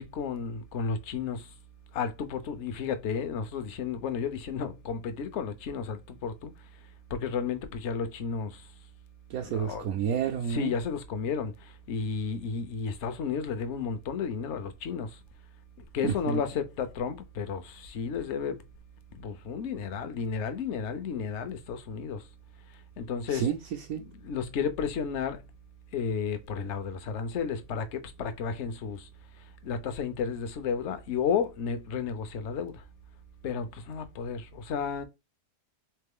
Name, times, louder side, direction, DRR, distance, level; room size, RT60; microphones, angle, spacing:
voice 1, 0.0-1.4 1.9-6.5 7.1-8.5 9.4-9.9 10.5-11.5 11.9-15.1 15.9-18.6 19.2-22.2 23.0-23.5 24.2-25.4 25.9-29.0 29.6-32.7 33.4-35.0, left 6 dB, 55° left, 0.8 m, -32 dB
voice 2, 9.3-10.7 16.0-16.4 23.3-24.0, right 8 dB, 70° right, 0.9 m, -30 dB
3.7 x 3.3 x 3.6 m
omnidirectional pair, 1.7 m